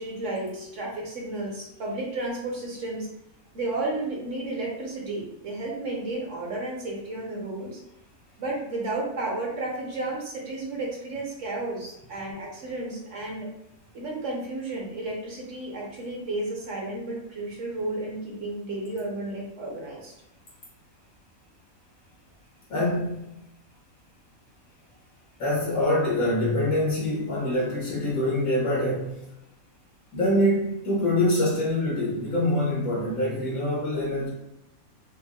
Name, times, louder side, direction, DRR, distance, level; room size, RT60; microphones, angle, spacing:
voice 1, 0.0-3.1 3.5-7.8 8.4-13.5 13.9-20.1, right 2 dB, 60° right, -3 dB, 1.3 m, -32 dB
voice 2, 22.7-23.4 25.4-29.2 30.1-34.3, left 1 dB, 80° left, -5 dB, 1.7 m, -25 dB
5.2 x 2.2 x 2.3 m, 0.86 s
omnidirectional pair, 1.5 m